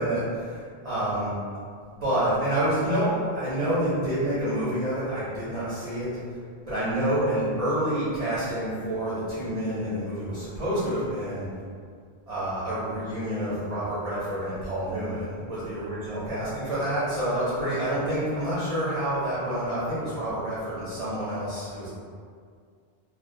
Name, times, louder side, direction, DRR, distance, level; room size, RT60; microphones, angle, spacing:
voice 1, 0.0-1.3 1.8-6.1 6.7-11.5 12.3-21.9, right 1 dB, 40° right, -12 dB, 0.6 m, -28 dB
2.3 x 2.2 x 2.5 m, 2.1 s
omnidirectional pair, 1.1 m